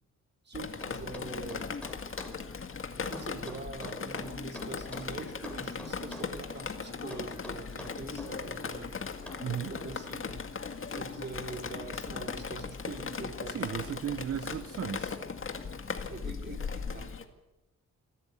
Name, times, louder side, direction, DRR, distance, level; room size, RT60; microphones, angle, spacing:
Drip, 0.5-17.2, left 5 dB, 45° left, 2.0 m, -38 dB
voice 1, 0.5-1.7 3.1-8.9 9.7-10.4 10.9-13.6 14.2-14.4 16.1-17.1, right 3 dB, 35° right, 3 dB, 3.8 m, -44 dB
sound 1, 0.8-2.4 3.1-5.1 5.4-6.4 7.1-8.4 9.3-9.5, left 1 dB, 5° left, 4.3 m, -45 dB
voice 2, 9.4-9.7 13.5-15.2, right 9 dB, 50° right, 12 dB, 0.9 m, -35 dB
25.0 x 13.5 x 8.2 m, 1.0 s
cardioid pair, 105°, 30 cm